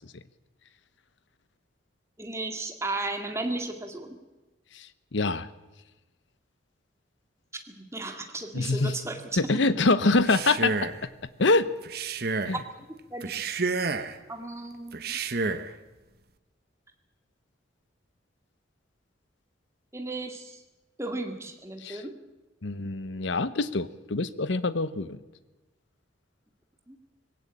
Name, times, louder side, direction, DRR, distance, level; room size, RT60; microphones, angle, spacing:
voice 1, 2.2-4.2 7.8-9.5 13.1-13.4 14.3-15.1 19.9-20.6 21.0-22.1 26.9-27.0, right 2 dB, 15° right, 5 dB, 2.0 m, -35 dB
voice 2, 4.7-5.5 8.5-9.0 9.3-10.9 11.4-11.7 12.5-12.6 21.8-22.0 22.6-25.2, left 3 dB, 70° left, 14 dB, 0.9 m, -25 dB
Male speech man speaking, 10.1-11.0 11.8-12.6 13.2-14.2 14.9-15.7, right 4 dB, 50° right, 1.1 m, -30 dB
20.5 x 17.0 x 8.7 m, 1.1 s
head